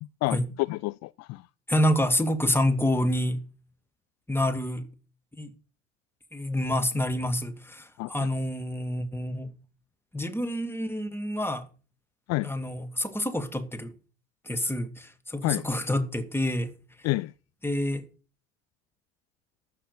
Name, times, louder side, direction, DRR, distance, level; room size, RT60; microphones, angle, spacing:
voice 1, 0.0-0.4 0.7-1.5 8.0-8.3 12.3-12.5 15.4-15.7 17.0-17.3, left 20 dB, 50° left, 0.5 m, -29 dB
voice 2, 1.7-3.4 4.3-4.9 5.4-5.5 6.3-9.5 10.1-11.7 12.4-13.9 14.5-16.7 17.6-18.0, left 1 dB, 5° left, 2.4 m, -27 dB
14.0 x 6.1 x 8.6 m
hypercardioid pair, 65°, 35 cm